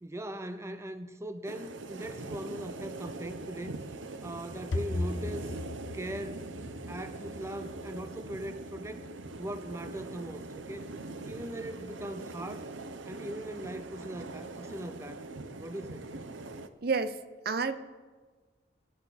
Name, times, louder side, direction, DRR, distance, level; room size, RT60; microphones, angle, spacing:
voice 1, 0.0-3.8 4.2-5.6 5.9-6.5 6.9-9.1 9.4-10.9 11.2-12.7 13.1-15.2 15.6-16.1, right 1 dB, 15° right, 10 dB, 0.5 m, -40 dB
sound 1, 1.4-16.7, right 3 dB, 85° right, 0.8 m, -42 dB
sound 2, 3.8-15.2, left 2 dB, 85° left, 0.9 m, -42 dB
voice 2, 16.8-17.2 17.4-17.8, right 4 dB, 55° right, 12 dB, 0.7 m, -29 dB
25.0 x 10.5 x 4.1 m, 1.5 s
head